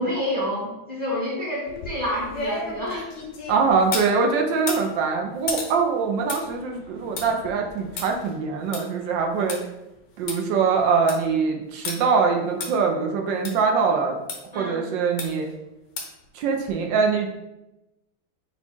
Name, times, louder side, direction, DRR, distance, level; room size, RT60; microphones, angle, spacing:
voice 1, 0.0-3.1 14.5-14.8, equal, 40° left, -7 dB, 0.6 m, -28 dB
sound 1, 1.7-4.1 4.6-9.6 10.0-10.1 10.3-10.4 10.8-11.3 11.8-12.0 12.6-12.7 13.4-13.5 14.3-14.4 15.2-15.5 16.0-16.2 16.7-16.8, left 3 dB, 65° left, 1.2 m, -34 dB
voice 2, 3.5-9.6 10.2-14.2 14.5-15.5 16.3-17.3, right 5 dB, 75° right, 2 dB, 1.2 m, -23 dB
4.2 x 2.3 x 4.3 m, 0.94 s
omnidirectional pair, 2.2 m